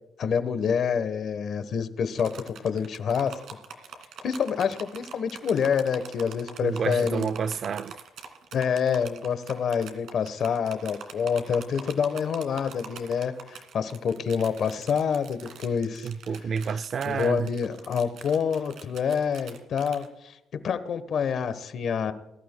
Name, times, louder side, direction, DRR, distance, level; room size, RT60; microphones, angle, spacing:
voice 1, 0.2-3.3 4.2-7.3 8.5-16.1 17.1-22.1, left 7 dB, 50° left, 1.1 m, -27 dB
sound 1, 2.2-20.1, right 6 dB, 65° right, 2.3 m, -44 dB
voice 2, 6.6-8.0 16.0-17.5, right 6 dB, 40° right, 0.4 m, -29 dB
21.0 x 13.0 x 2.2 m
cardioid pair, 150°, 0 cm